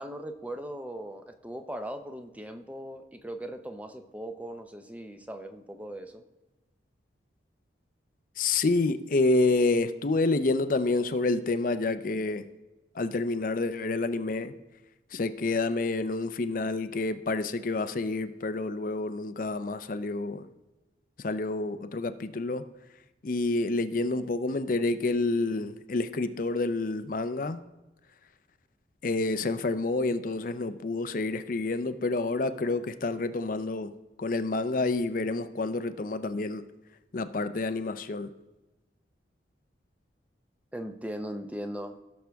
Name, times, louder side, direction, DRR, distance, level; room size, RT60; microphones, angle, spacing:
voice 1, 0.0-6.2 40.7-42.0, right 1 dB, 10° right, 7 dB, 0.6 m, -39 dB
voice 2, 8.4-12.4 12.9-14.5 15.1-20.5 21.2-22.6 23.2-27.6 29.0-33.9 34.2-36.6 37.1-38.3, left 3 dB, 45° left, 11 dB, 0.5 m, -28 dB
16.5 x 6.4 x 3.4 m, 1.1 s
head